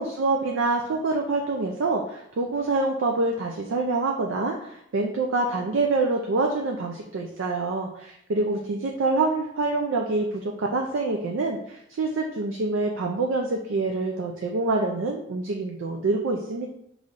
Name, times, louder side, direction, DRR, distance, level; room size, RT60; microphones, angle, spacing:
voice 1, 0.0-16.7, right 3 dB, 75° right, 2 dB, 0.4 m, -26 dB
5.3 x 3.1 x 2.5 m, 0.76 s
head